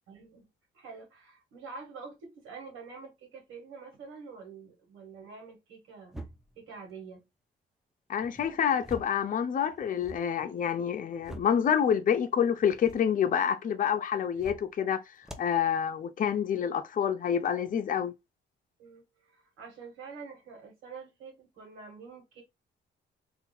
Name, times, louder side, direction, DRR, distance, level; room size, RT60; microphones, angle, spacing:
voice 1, 0.1-0.5 0.7-6.1 6.5-7.2 18.8-22.4, right 5 dB, 90° right, 1.7 m, -47 dB
sound 1, 6.1-6.6 8.2-9.2 9.6-10.2 10.9-11.6 12.6-13.1 14.3-14.8 15.2-15.6, right 1 dB, ahead, 0.5 m, -46 dB
voice 2, 8.1-15.0 15.4-18.1, left 8 dB, 45° left, 0.5 m, -27 dB
2.9 x 2.3 x 4.2 m
cardioid pair, 90°, 20 cm